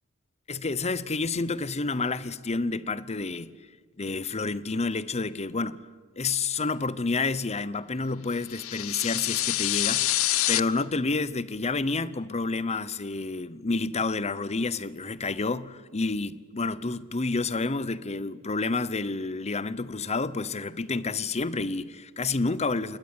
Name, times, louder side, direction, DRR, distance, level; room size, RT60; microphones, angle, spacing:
voice 1, 0.5-3.5 4.0-5.9 6.2-10.1 10.5-23.0, left 3 dB, 30° left, 0.8 m, -29 dB
sound 1, 8.5-10.6, left 15 dB, 70° left, 0.7 m, -26 dB
28.5 x 19.5 x 9.7 m
head